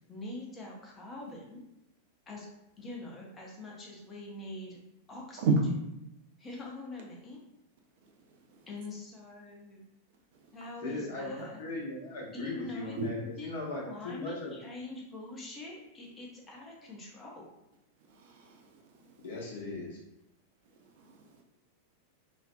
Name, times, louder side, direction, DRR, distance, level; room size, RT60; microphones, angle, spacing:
voice 1, 0.1-1.6 2.3-2.5 2.8-4.8 5.1-5.5 6.4-7.4 8.7-9.9 10.5-11.6 12.3-17.5, left 2 dB, 20° left, -1 dB, 0.6 m, -44 dB
voice 2, 10.8-13.2 13.4-14.6 19.2-20.0, left 2 dB, 55° left, -3 dB, 0.7 m, -38 dB
voice 3, 18.2-19.1 20.8-21.4, right 3 dB, 50° right, 2 dB, 0.4 m, -32 dB
2.4 x 2.1 x 2.5 m, 0.86 s
figure-of-eight pair, 90°, 0 cm